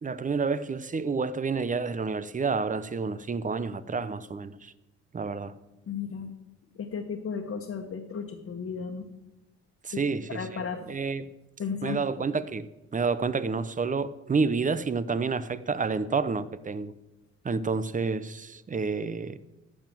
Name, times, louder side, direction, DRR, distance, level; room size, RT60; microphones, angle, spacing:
voice 1, 0.0-4.7 5.1-5.5 9.8-10.6 10.9-11.3 11.8-16.9 17.4-19.4, right 4 dB, 25° right, 0.7 m, -29 dB
voice 2, 5.9-6.3 6.8-9.1 9.9-10.0 10.3-10.9 11.6-12.0, left 6 dB, 50° left, 1.4 m, -34 dB
12.0 x 7.0 x 7.6 m
cardioid pair, 90°, 30 cm